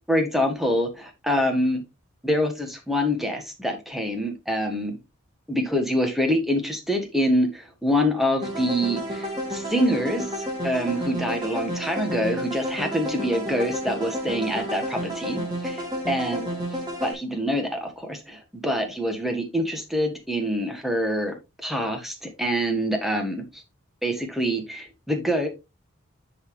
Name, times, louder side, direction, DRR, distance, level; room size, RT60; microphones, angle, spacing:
voice 1, 0.1-1.8 2.2-5.0 5.5-21.3 21.6-23.6 24.0-25.5, equal, ahead, 4 dB, 1.3 m, -26 dB
sound 1, 8.4-17.1, equal, 20° right, 2.0 m, -31 dB
10.5 x 4.1 x 3.1 m, 0.25 s
head